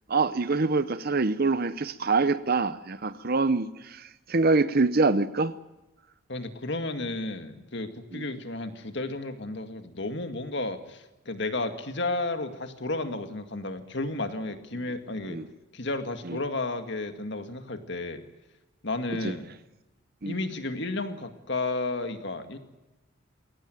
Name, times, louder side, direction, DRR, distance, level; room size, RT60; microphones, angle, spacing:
voice 1, 0.1-5.5 8.1-8.3 15.3-15.4 16.3-16.4 19.2-19.3 20.2-20.4, right 3 dB, 45° right, 13 dB, 0.7 m, -25 dB
voice 2, 6.3-15.4 15.7-18.2 18.8-19.5 20.3-22.6, left 2 dB, 55° left, 8 dB, 2.1 m, -32 dB
22.0 x 17.5 x 9.2 m, 1.0 s
head